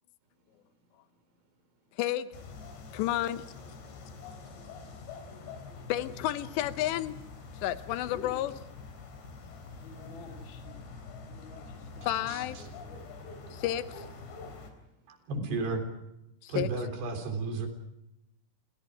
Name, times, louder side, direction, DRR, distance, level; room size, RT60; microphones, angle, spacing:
voice 1, 0.2-2.0 4.2-5.9 9.3-9.6 14.7-15.3, right 1 dB, 80° right, 8 dB, 6.8 m, -72 dB
voice 2, 2.0-2.3 2.9-3.4 5.9-7.2 7.6-8.5 12.1-12.6 13.5-14.0 16.6-16.7, left 13 dB, 75° left, 13 dB, 2.8 m, -31 dB
sound 1, 2.3-14.7, left 4 dB, 60° left, 5.6 m, -45 dB
voice 3, 8.0-8.6 9.8-10.8 11.3-13.0, left 4 dB, 35° left, 3 dB, 2.3 m, -50 dB
voice 4, 12.3-12.7 15.1-15.9 16.5-17.7, right 3 dB, 55° right, 6 dB, 5.6 m, -33 dB
29.0 x 27.0 x 5.0 m, 0.87 s
omnidirectional pair, 5.9 m